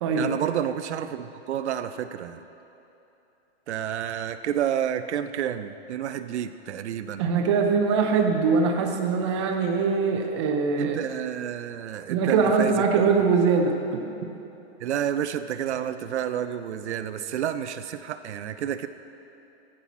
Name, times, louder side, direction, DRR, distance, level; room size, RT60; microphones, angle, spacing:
voice 1, 0.1-2.4 3.7-7.3 10.8-12.9 14.8-18.9, right 9 dB, 90° right, 10 dB, 0.6 m, -30 dB
voice 2, 7.2-11.0 12.1-14.0, right 5 dB, 25° right, 3 dB, 0.6 m, -22 dB
12.5 x 7.7 x 4.2 m, 3.0 s
hypercardioid pair, 170°, 33 cm